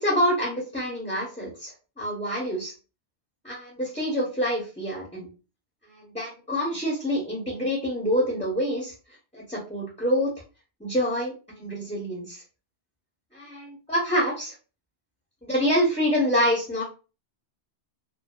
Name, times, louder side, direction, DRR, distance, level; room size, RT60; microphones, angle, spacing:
voice 1, 0.0-2.7 3.4-5.3 5.9-8.9 9.3-10.3 10.8-12.4 13.3-14.5 15.4-16.8, equal, 5° left, -4 dB, 0.6 m, -26 dB
2.6 x 2.3 x 2.2 m, 0.32 s
omnidirectional pair, 1.2 m